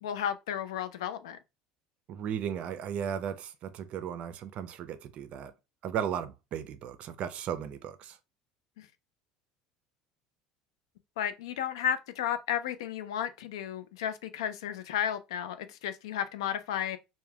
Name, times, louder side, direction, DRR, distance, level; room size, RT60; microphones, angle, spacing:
voice 1, 0.0-1.4 8.8-8.9 11.2-17.0, left 9 dB, 85° left, 0.3 m, -33 dB
voice 2, 2.1-5.5 5.8-8.2, right 8 dB, 55° right, 0.4 m, -36 dB
3.2 x 2.1 x 2.2 m
hypercardioid pair, 85°, 3 cm